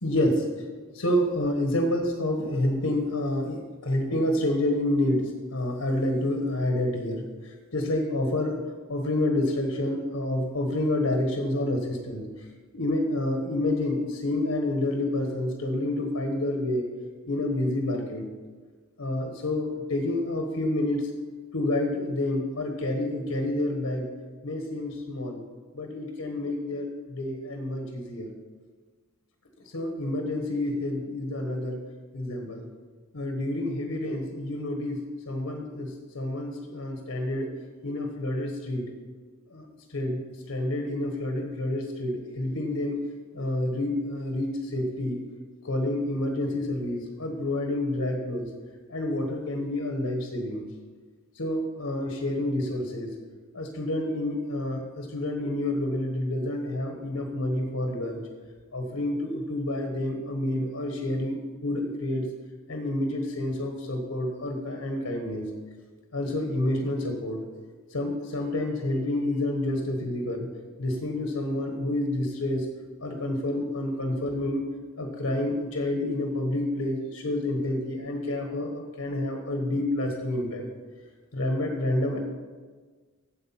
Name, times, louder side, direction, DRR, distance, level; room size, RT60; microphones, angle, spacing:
voice 1, 0.0-0.5 0.9-8.6 8.9-12.2 12.7-16.9 17.3-18.3 19.0-21.1 21.5-24.1 24.4-25.4 25.7-28.3 29.7-31.8 32.1-32.7 33.1-37.5 37.8-38.8 39.5-43.0 43.3-45.2 45.6-48.5 48.9-50.6 51.3-53.1 53.5-58.2 58.7-62.3 62.7-65.5 66.1-67.4 67.9-70.5 70.8-72.6 73.0-74.6 75.0-80.7 81.3-82.2, left 1 dB, 85° left, 3 dB, 1.3 m, -28 dB
8.7 x 7.7 x 5.8 m, 1.4 s
head